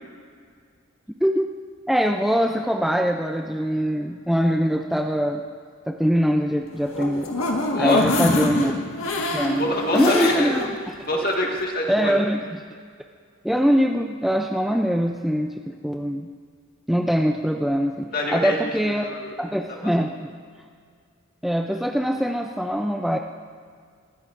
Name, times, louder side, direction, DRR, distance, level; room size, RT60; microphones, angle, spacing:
voice 1, 1.2-1.5 1.9-5.4 5.9-7.3 7.8-8.8 9.3-10.9 11.9-12.5 13.4-16.3 16.9-19.1 19.4-20.3 21.4-23.2, equal, ahead, 2 dB, 0.4 m, -23 dB
sound 1, 6.7-10.7 11.1-11.2 11.5-11.6, left 2 dB, 80° left, 1.6 m, -25 dB
voice 2, 7.7-8.0 9.3-10.7 11.1-12.2 18.1-19.8, left 1 dB, 45° left, 0 dB, 1.8 m, -26 dB
21.0 x 15.5 x 2.6 m, 2.1 s
head